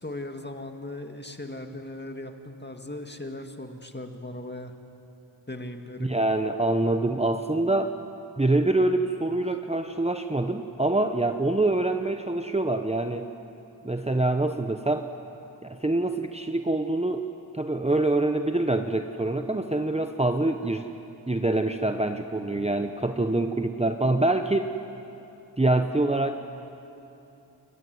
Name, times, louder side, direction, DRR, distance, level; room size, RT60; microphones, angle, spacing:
voice 1, 0.0-4.7 5.5-6.1, left 1 dB, 25° left, 5 dB, 2.0 m, -38 dB
voice 2, 6.0-7.9 8.4-13.3 13.8-15.1 15.6-17.2 17.5-20.9 21.3-24.7 25.6-26.3, right 2 dB, 15° right, 6 dB, 0.9 m, -25 dB
29.5 x 14.5 x 9.6 m, 2.9 s
wide cardioid pair, 55°, 43 cm